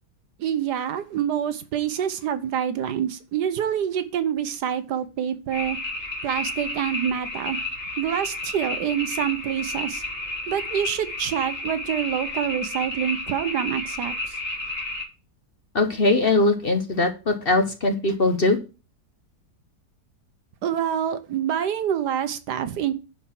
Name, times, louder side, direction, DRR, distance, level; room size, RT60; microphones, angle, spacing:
voice 1, 0.4-5.8 6.2-7.6 8.0-10.0 10.5-14.4 20.6-22.9, right 9 dB, 75° right, 1.5 m, -26 dB
sound 1, 5.5-15.0, left 2 dB, 5° left, 2.4 m, -32 dB
voice 2, 15.7-18.6, left 2 dB, 40° left, 1.0 m, -21 dB
11.0 x 4.7 x 5.8 m
omnidirectional pair, 1.8 m